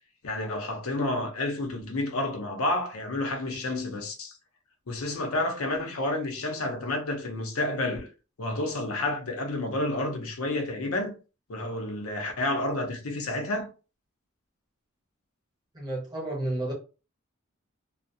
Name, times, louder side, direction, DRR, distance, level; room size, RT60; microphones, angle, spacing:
voice 1, 0.2-4.4 4.9-8.1 8.4-11.2 11.5-13.7, left 2 dB, 85° left, 0.6 m, -30 dB
voice 2, 15.7-16.7, right 1 dB, 20° right, 1.0 m, -31 dB
2.3 x 2.0 x 2.6 m
head